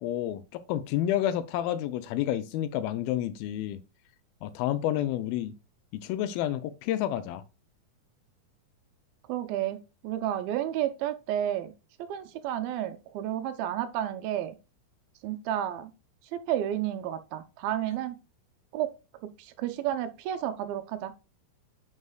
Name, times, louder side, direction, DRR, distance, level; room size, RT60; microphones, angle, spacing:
voice 1, 0.0-3.8 4.4-5.5 5.9-7.4, left 12 dB, 80° left, 2.3 m, -30 dB
voice 2, 9.3-11.7 12.0-14.6 15.2-15.9 16.3-18.2 18.7-18.9 19.4-21.1, right 11 dB, 80° right, 2.3 m, -31 dB
9.6 x 5.4 x 2.3 m
omnidirectional pair, 4.5 m